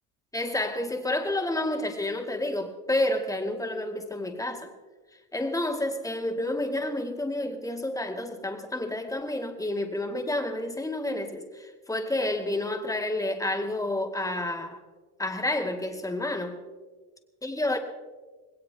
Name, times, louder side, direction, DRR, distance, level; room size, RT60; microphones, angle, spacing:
voice 1, 0.3-4.7 5.3-14.8 15.2-16.6 17.4-17.8, left 1 dB, 10° left, 2.0 m, -30 dB
20.5 x 18.0 x 3.5 m
cardioid pair, 110°, 40 cm